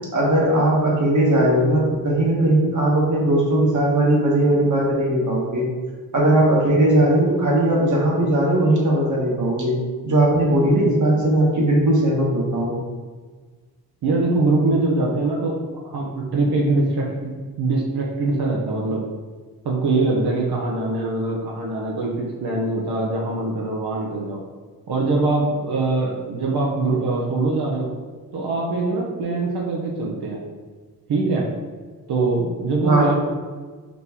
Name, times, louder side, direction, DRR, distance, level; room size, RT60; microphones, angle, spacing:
voice 1, 0.1-5.6 6.1-9.7 10.0-12.7 32.8-33.1, right 1 dB, 55° right, -3 dB, 1.2 m, -18 dB
voice 2, 14.0-19.0 19.6-24.4 24.9-27.9 28.3-30.4 31.1-31.5 32.1-33.1, right 2 dB, 85° right, -3 dB, 0.7 m, -23 dB
4.2 x 3.4 x 2.9 m, 1.4 s
wide cardioid pair, 120°, 37 cm